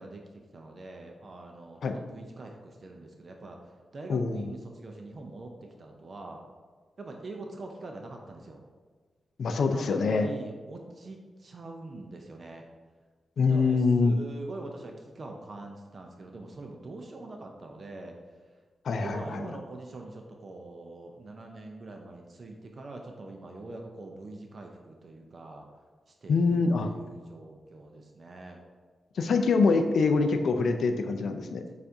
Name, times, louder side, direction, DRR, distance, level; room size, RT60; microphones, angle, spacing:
voice 1, 0.0-6.4 7.0-8.6 9.7-12.7 13.5-18.2 19.0-25.7 26.1-28.6, right 2 dB, 55° right, 2 dB, 0.5 m, -43 dB
voice 2, 4.1-4.5 9.4-10.3 13.4-14.1 18.8-19.4 26.3-26.9 29.2-31.6, left 4 dB, 75° left, 6 dB, 0.3 m, -25 dB
6.8 x 2.5 x 2.6 m, 1.4 s
cardioid pair, 55°, 0 cm